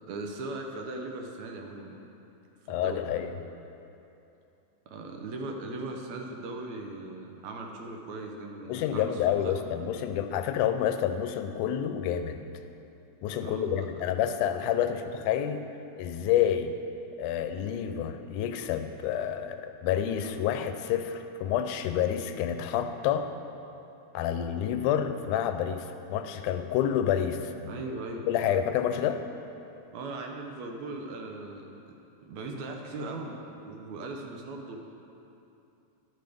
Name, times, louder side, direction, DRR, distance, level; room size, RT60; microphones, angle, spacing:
voice 1, 0.1-2.0 2.8-3.0 4.9-9.5 13.4-13.9 27.7-28.2 29.9-31.7 32.3-34.8, right 2 dB, 70° right, 2 dB, 2.1 m, -39 dB
voice 2, 2.7-3.3 8.7-12.4 13.2-15.7 16.0-16.7 17.2-23.3 24.1-27.7 28.3-29.2, left 9 dB, 85° left, 8 dB, 2.1 m, -28 dB
12.5 x 11.5 x 3.5 m, 2.8 s
omnidirectional pair, 3.5 m